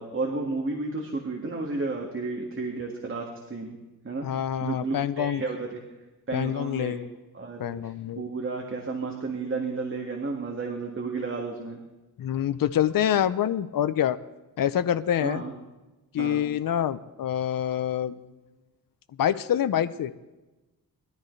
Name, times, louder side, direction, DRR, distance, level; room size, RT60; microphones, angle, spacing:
voice 1, 0.0-3.8 4.0-4.3 4.6-5.8 6.3-7.0 7.3-11.8 15.2-15.5 16.2-16.4, right 3 dB, 35° right, 1 dB, 1.9 m, -32 dB
voice 2, 4.2-5.4 6.3-7.1 7.6-8.2 12.2-14.2 14.6-15.4 16.1-18.2 19.2-20.1, left 10 dB, 60° left, 11 dB, 0.7 m, -26 dB
21.5 x 13.0 x 3.2 m, 1.1 s
wide cardioid pair, 110°, 38 cm